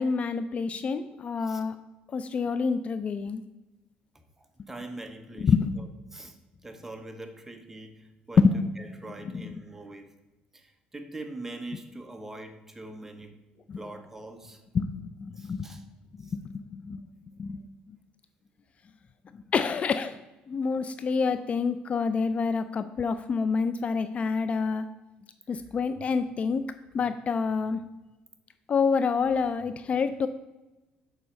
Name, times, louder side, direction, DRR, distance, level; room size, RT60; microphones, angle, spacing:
voice 1, 0.0-1.8 2.1-3.4 5.4-5.8 8.4-8.6 9.2-9.4 13.7-13.8 14.7-15.7 16.3-17.0 17.4-17.6 19.5-20.2 20.5-24.8 25.5-26.6 26.9-27.8 28.7-30.3, left 5 dB, 40° left, 11 dB, 0.3 m, -27 dB
voice 2, 4.1-6.4 6.6-10.1 10.5-13.3 13.8-14.6 15.4-15.8 16.2-16.3, right 2 dB, 10° right, 6 dB, 0.9 m, -43 dB
6.9 x 4.1 x 5.3 m, 1.1 s
cardioid pair, 95°, 3 cm